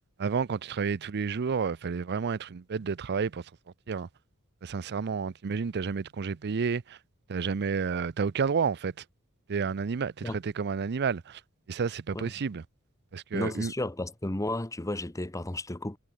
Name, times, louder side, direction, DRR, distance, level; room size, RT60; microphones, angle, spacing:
voice 1, 0.2-3.4 3.9-4.1 4.6-7.0 7.3-8.9 9.5-11.4 11.7-12.6 13.1-13.7, right 5 dB, 50° right, 0.5 m, -30 dB
voice 2, 13.3-16.0, left 1 dB, 15° left, 1.0 m, -33 dB
head